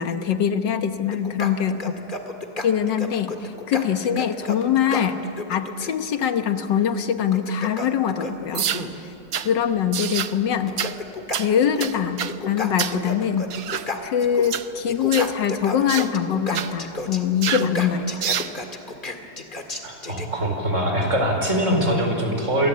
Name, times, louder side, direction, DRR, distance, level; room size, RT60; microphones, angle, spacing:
voice 1, 0.0-1.9 2.6-5.2 5.5-8.7 9.4-10.8 11.4-12.2 12.5-13.5 14.0-18.4, left 8 dB, 80° left, 8 dB, 1.8 m, -23 dB
sound 1, 1.1-5.9 7.2-9.0 10.1-10.2 10.5-12.0 12.3-14.6 14.9-20.3, left 2 dB, 30° left, 2.0 m, -32 dB
sound 2, 8.5-8.9 9.3-9.5 9.9-10.3 10.8-11.0 11.3-11.5 11.8-12.4 12.8-13.0 13.5-13.9 14.4-14.7 15.1-15.3 15.9-16.1 16.5-16.7 17.4-17.7 18.2-18.5, right 9 dB, 60° right, 1.3 m, -27 dB
voice 2, 19.8-22.7, equal, 40° right, 2 dB, 5.2 m, -23 dB
28.5 x 23.0 x 8.7 m, 2.9 s
omnidirectional pair, 1.9 m